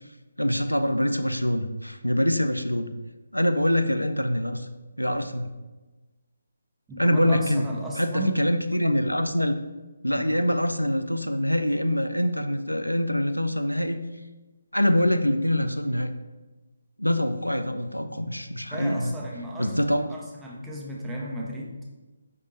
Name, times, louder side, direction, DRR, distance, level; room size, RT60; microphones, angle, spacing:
voice 1, 0.4-2.9 3.3-4.7 5.0-5.5 7.0-7.7 8.0-9.5 10.0-14.0 14.7-16.1 17.0-19.1 19.6-20.1, equal, 85° left, 8 dB, 0.3 m, -24 dB
voice 2, 6.9-8.4 10.1-10.4 18.7-19.8 20.1-21.9, right 1 dB, 5° right, -2 dB, 0.5 m, -35 dB
5.0 x 3.3 x 2.7 m, 1.2 s
figure-of-eight pair, 145°, 0 cm